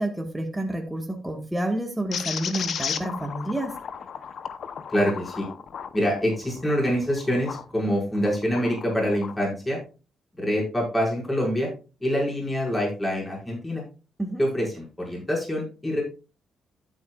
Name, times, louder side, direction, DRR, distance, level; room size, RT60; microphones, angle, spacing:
voice 1, 0.0-3.7 14.2-14.4, right 1 dB, 10° right, 3 dB, 1.5 m, -29 dB
sound 1, 2.1-7.7 8.2-9.4, left 7 dB, 60° left, 0.8 m, -35 dB
voice 2, 4.9-5.5 5.9-9.8 10.4-11.7 12.0-13.8 14.4-16.0, equal, 15° left, -2 dB, 5.5 m, -25 dB
11.5 x 8.3 x 2.4 m, 0.32 s
cardioid pair, 90°, 0 cm